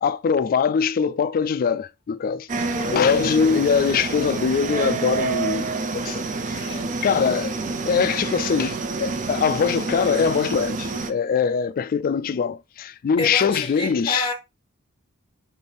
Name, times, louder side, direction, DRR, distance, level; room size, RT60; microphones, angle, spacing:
voice 1, 0.0-2.5 2.9-6.6 7.0-14.3, left 6 dB, 40° left, 0.3 m, -22 dB
sound 1, 2.5-11.1, right 4 dB, 35° right, 0.4 m, -28 dB
voice 2, 2.6-3.0 6.6-7.0 13.2-14.3, left 2 dB, 25° left, 1.0 m, -29 dB
5.6 x 2.6 x 3.3 m
head